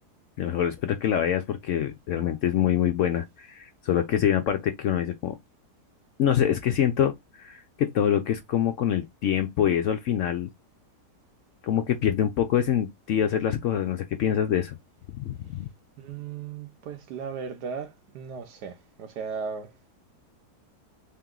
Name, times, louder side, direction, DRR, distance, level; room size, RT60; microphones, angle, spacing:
voice 1, 0.4-5.4 6.2-10.5 11.6-14.8 15.2-15.7, left 10 dB, 70° left, 0.7 m, -25 dB
voice 2, 16.0-19.7, right 6 dB, 80° right, 1.4 m, -36 dB
3.6 x 2.9 x 3.7 m
omnidirectional pair, 1.7 m